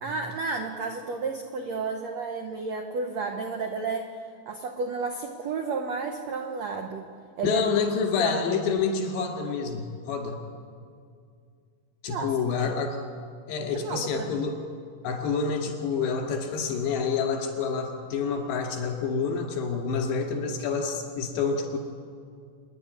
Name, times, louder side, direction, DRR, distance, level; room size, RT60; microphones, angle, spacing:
voice 1, 0.0-4.1 4.5-7.1 7.4-7.6 8.2-8.4 12.1-12.3 12.6-12.7 13.7-14.3, right 4 dB, 85° right, 3 dB, 1.5 m, -32 dB
voice 2, 7.4-10.4 12.0-13.0 13.5-14.6 15.0-21.8, left 5 dB, 80° left, 2 dB, 4.5 m, -28 dB
26.5 x 11.0 x 9.7 m, 2.2 s
omnidirectional pair, 4.9 m